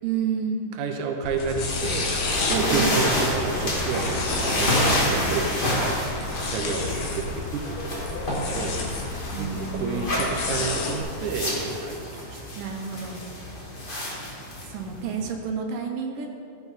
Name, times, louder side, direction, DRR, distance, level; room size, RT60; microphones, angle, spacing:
voice 1, 0.0-0.7 2.7-3.1 5.0-5.5 9.3-10.2 12.6-13.2 14.7-16.3, right 6 dB, 90° right, 2 dB, 2.7 m, -30 dB
voice 2, 0.8-2.1 2.5-8.8 9.3-12.6, right 4 dB, 75° right, 3 dB, 2.2 m, -30 dB
sound 1, 1.2-11.0, left 3 dB, 75° left, 2.9 m, -30 dB
sound 2, 1.6-15.3, left 1 dB, 45° left, 0.6 m, -29 dB
14.0 x 8.4 x 4.2 m, 2.4 s
omnidirectional pair, 3.8 m